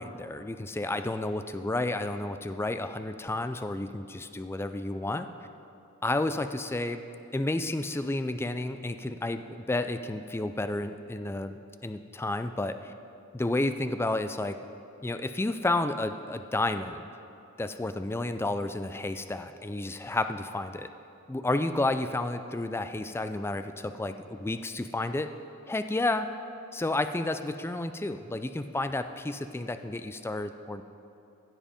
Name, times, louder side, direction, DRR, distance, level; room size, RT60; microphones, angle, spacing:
voice 1, 0.0-5.3 6.0-7.0 7.3-12.9 13.3-14.6 15.0-17.0 17.6-20.9 21.3-25.3 25.7-26.3 26.7-30.8, left 2 dB, 10° left, 10 dB, 0.3 m, -31 dB
15.5 x 7.4 x 5.1 m, 2.7 s
head